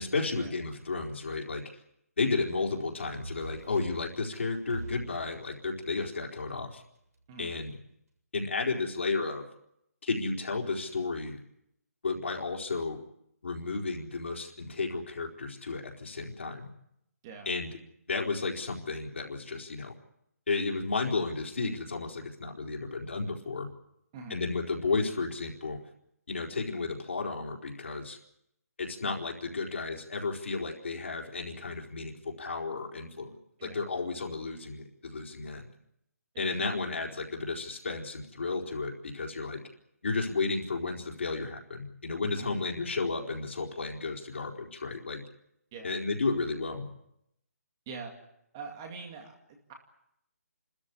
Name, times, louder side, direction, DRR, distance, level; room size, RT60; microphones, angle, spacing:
voice 1, 0.0-1.6 2.2-6.8 7.4-7.8 8.3-9.5 10.0-11.4 12.0-13.0 13.4-16.7 17.5-17.7 18.1-19.9 20.5-23.7 24.3-25.8 26.3-28.2 28.8-33.3 33.6-35.7 36.4-39.6 40.0-45.2 45.8-46.8, left 3 dB, 50° left, 0 dB, 4.3 m, -33 dB
sound 1, 3.2-6.6, right 2 dB, 70° right, 7.6 m, -44 dB
voice 2, 42.4-42.7 45.7-45.9 47.9-48.1 48.5-49.7, right 5 dB, 15° right, 3 dB, 2.3 m, -44 dB
29.5 x 14.0 x 9.9 m, 0.79 s
hypercardioid pair, 180°, 9 cm